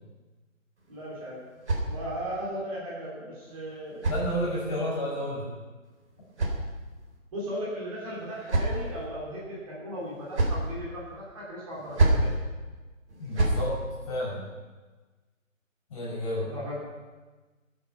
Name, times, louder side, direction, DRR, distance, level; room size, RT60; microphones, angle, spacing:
sound 1, 0.8-2.4 3.4-4.8 5.8-7.2 8.0-9.0 10.0-10.7 11.7-12.3 13.1-13.6, right 2 dB, 55° right, 3.9 m, -29 dB
voice 1, 0.9-1.4 1.9-4.1 4.8-5.0 7.3-12.3 16.4-16.8, equal, 25° right, -6 dB, 3.2 m, -36 dB
voice 2, 4.1-5.5 13.2-14.5 15.9-16.5, equal, 25° left, -5 dB, 5.5 m, -31 dB
19.0 x 8.9 x 5.5 m, 1.3 s
hypercardioid pair, 165°, 40 cm